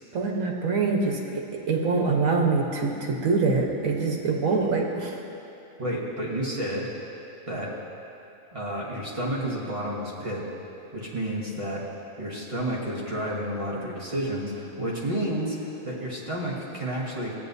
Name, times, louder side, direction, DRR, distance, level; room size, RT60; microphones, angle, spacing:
voice 1, 0.1-5.2, right 4 dB, 80° right, 0 dB, 1.5 m, -25 dB
voice 2, 5.8-6.9 7.5-7.7 8.5-10.4 10.9-11.8 12.2-17.3, right 1 dB, 25° right, -5 dB, 1.3 m, -30 dB
14.5 x 9.2 x 2.7 m, 2.8 s
omnidirectional pair, 1.4 m